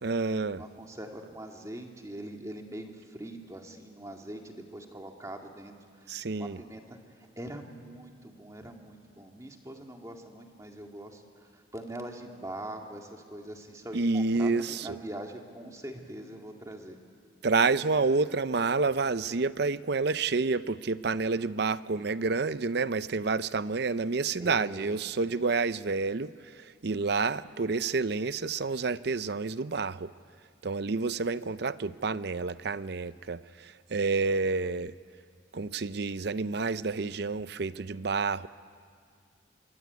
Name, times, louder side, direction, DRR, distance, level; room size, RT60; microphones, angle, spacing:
voice 1, 0.0-0.6 6.1-6.6 13.9-15.0 17.4-30.1 30.6-34.9 35.5-38.5, right 4 dB, 55° right, 15 dB, 0.6 m, -29 dB
voice 2, 0.5-7.0 7.4-17.0 24.4-24.9, right 1 dB, 15° right, 2 dB, 2.2 m, -43 dB
24.5 x 24.0 x 9.5 m, 2.1 s
head